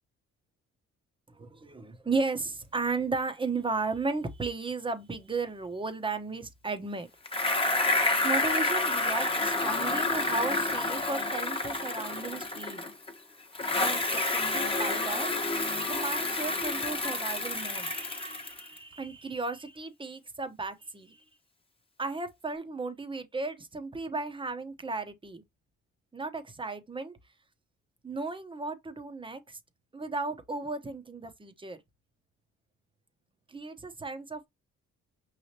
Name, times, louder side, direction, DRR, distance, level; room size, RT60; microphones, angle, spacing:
voice 1, 1.3-7.1 7.4-7.9 8.2-12.9 13.8-15.3 15.9-21.2 22.0-25.4 26.1-27.2 28.0-29.6 29.9-31.8 33.5-34.5, right 3 dB, 15° right, 0.9 m, -35 dB
Bicycle, 7.3-13.1 13.5-18.8, left 2 dB, 20° left, 1.1 m, -29 dB
5.5 x 3.3 x 2.8 m
cardioid pair, 90°, 30 cm